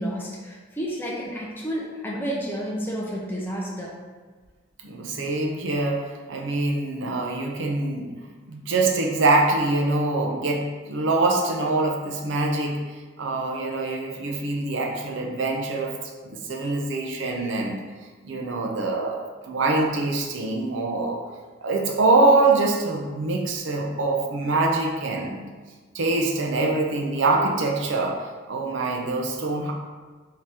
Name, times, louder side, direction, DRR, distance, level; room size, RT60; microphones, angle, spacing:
voice 1, 0.0-4.0, equal, 10° left, -4 dB, 0.6 m, -30 dB
voice 2, 4.8-8.1 8.5-12.8 13.2-16.0 16.3-17.9 18.2-21.2 21.6-25.5 25.9-29.7, right 2 dB, 65° right, 1 dB, 0.6 m, -24 dB
3.7 x 2.8 x 4.8 m, 1.4 s
head